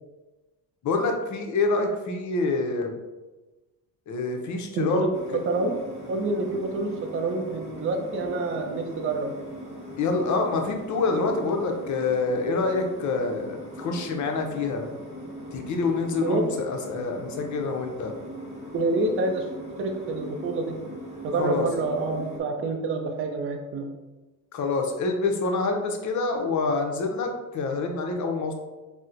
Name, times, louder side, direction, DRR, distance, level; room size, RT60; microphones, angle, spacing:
voice 1, 0.8-3.0 4.1-5.4 10.0-14.8 15.5-18.1 21.4-21.7 24.5-28.5, left 3 dB, 50° left, 3 dB, 0.6 m, -26 dB
voice 2, 4.7-5.1 5.3-5.8 6.1-9.3 16.2-16.4 18.7-19.4 19.8-20.8 21.2-23.9, right 3 dB, 35° right, 3 dB, 0.5 m, -27 dB
sound 1, 5.1-22.4, equal, 20° right, 1.0 m, -40 dB
4.1 x 2.1 x 2.5 m, 1.1 s
cardioid pair, 85°, 38 cm